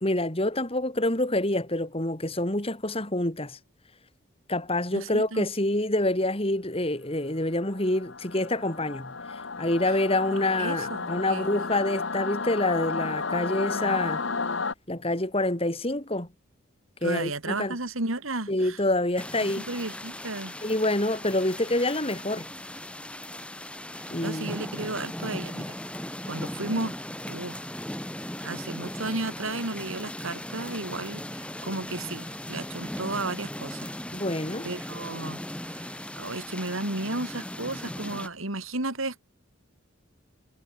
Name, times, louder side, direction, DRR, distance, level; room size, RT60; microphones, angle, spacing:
voice 1, 0.0-3.6 4.5-14.2 14.9-16.3 17.0-17.7 18.5-19.6 20.6-22.5 24.1-24.5 34.1-34.7, left 1 dB, 25° left, 3.0 m, -27 dB
voice 2, 4.9-5.5 9.9-10.0 10.3-11.6 17.0-18.8 19.4-20.6 23.9-27.0 27.3-27.6 28.4-33.9 34.6-39.2, right 2 dB, 75° right, 4.0 m, -34 dB
Singing / Musical instrument, 7.6-14.7, left 4 dB, 60° left, 1.4 m, -32 dB
sound 1, 19.2-38.3, left 1 dB, 5° left, 3.9 m, -38 dB
head